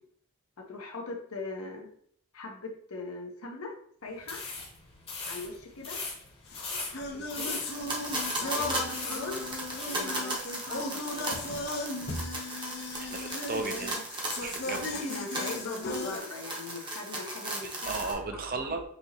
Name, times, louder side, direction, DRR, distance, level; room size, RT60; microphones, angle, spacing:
voice 1, 0.7-1.9 2.3-3.8 4.0-4.4 5.3-6.0 6.6-7.5 8.3-9.4 9.8-11.3 14.6-18.2 18.5-18.8, left 3 dB, 75° left, 0 dB, 1.0 m, -41 dB
sound 1, 4.2-10.1, left 3 dB, 25° left, 1.0 m, -40 dB
sound 2, 6.5-16.2, left 2 dB, 50° left, 0.6 m, -36 dB
sound 3, 7.5-18.1, right 1 dB, 20° right, 0.9 m, -37 dB
voice 2, 13.0-14.0 14.4-14.9 17.6-18.8, right 3 dB, 40° right, 5 dB, 0.5 m, -35 dB
5.5 x 2.9 x 2.8 m, 0.63 s
head